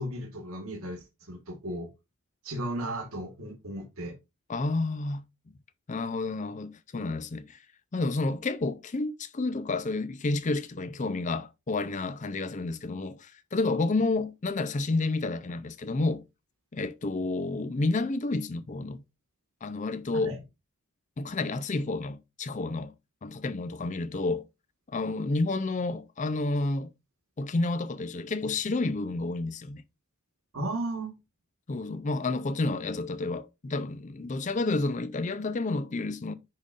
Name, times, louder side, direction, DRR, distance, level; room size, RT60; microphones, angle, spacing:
voice 1, 0.0-1.9 2.4-4.1 20.2-20.4 30.5-31.1, right 1 dB, 75° right, 1.4 m, -35 dB
voice 2, 4.5-5.2 5.9-7.6 7.9-16.2 16.7-19.0 19.6-20.4 21.2-22.9 23.2-24.4 24.9-26.9 27.4-29.8 31.7-36.3, left 3 dB, 35° left, 0.5 m, -30 dB
10.5 x 3.7 x 2.4 m
head